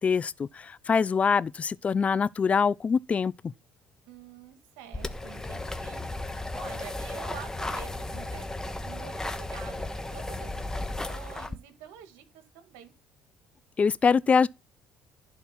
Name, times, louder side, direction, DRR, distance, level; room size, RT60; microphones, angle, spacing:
voice 1, 0.0-3.3 13.8-14.5, left 5 dB, 35° left, 0.6 m, -24 dB
voice 2, 4.1-6.0 6.5-9.9 10.1-12.9, right 10 dB, 80° right, 1.9 m, -47 dB
sound 1, 4.9-11.6, left 2 dB, 15° left, 1.4 m, -35 dB
sound 2, 5.7-11.1, right 1 dB, 15° right, 1.3 m, -44 dB
11.5 x 4.6 x 5.9 m
hypercardioid pair, 70°, 4 cm